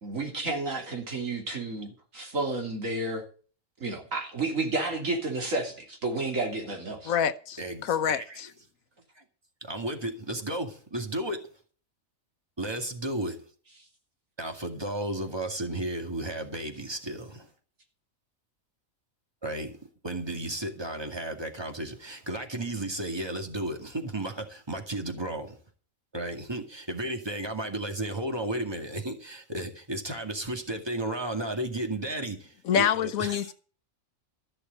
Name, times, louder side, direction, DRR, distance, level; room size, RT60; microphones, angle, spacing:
voice 1, 0.0-3.3 3.8-7.1, right 2 dB, 75° right, 3.6 m, -31 dB
voice 2, 7.1-8.5 32.7-33.5, left 8 dB, 85° left, 1.2 m, -27 dB
voice 3, 7.6-8.4 9.2-9.3 9.6-11.4 12.6-13.4 14.4-17.5 19.4-19.8 20.0-25.6 26.1-33.5, right 1 dB, 20° right, 2.2 m, -33 dB
14.0 x 6.6 x 8.2 m
omnidirectional pair, 1.4 m